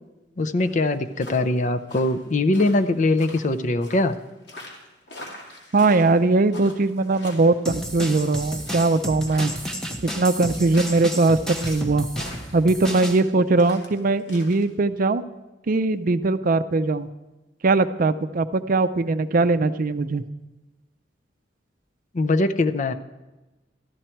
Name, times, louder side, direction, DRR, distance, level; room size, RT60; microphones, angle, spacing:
voice 1, 0.4-4.2 22.1-22.9, left 2 dB, 45° left, 9 dB, 0.6 m, -22 dB
sound 1, 0.6-14.6, left 1 dB, 70° left, 2.5 m, -43 dB
voice 2, 5.7-9.5 10.2-12.1 12.5-15.2 15.7-17.1 17.6-20.2, right 3 dB, 50° right, 12 dB, 0.5 m, -20 dB
sound 2, 7.6-13.2, equal, 5° left, 1.0 m, -32 dB
14.0 x 12.5 x 4.5 m, 1.1 s
head